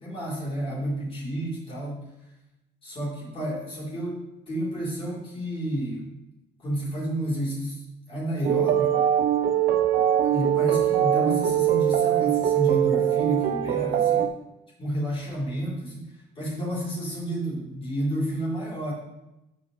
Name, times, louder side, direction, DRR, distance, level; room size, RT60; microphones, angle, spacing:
voice 1, 0.0-2.1 2.8-4.2 4.5-6.2 6.6-7.8 8.1-9.0 10.2-14.3 14.8-16.1 16.4-18.9, right 1 dB, 35° left, -6 dB, 3.4 m, -30 dB
sound 1, 8.4-14.3, right 10 dB, 65° right, 0.8 m, -22 dB
13.0 x 5.2 x 3.2 m, 0.92 s
cardioid pair, 110°, 17 cm